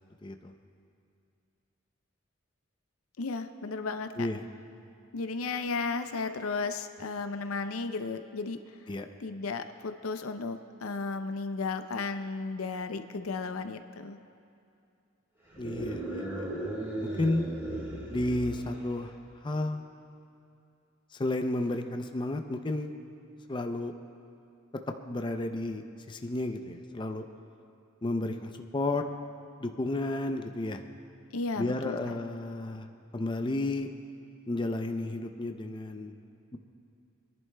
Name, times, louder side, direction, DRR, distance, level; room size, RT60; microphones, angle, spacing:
voice 1, 0.2-0.5 4.2-4.4 8.9-9.1 15.6-16.5 17.0-17.5 18.1-19.1 19.4-19.8 21.1-22.9 23.5-23.9 24.9-25.8 26.1-27.2 28.0-29.0 29.6-30.8 31.6-32.9 33.1-33.9 34.5-36.2, left 2 dB, 25° left, 6 dB, 0.5 m, -32 dB
voice 2, 3.2-4.3 5.1-8.6 9.2-14.2 31.3-32.0, left 4 dB, 85° left, 9 dB, 0.5 m, -34 dB
sound 1, 15.5-19.1, right 1 dB, 15° right, 3.3 m, -36 dB
29.5 x 11.0 x 2.2 m, 2.6 s
head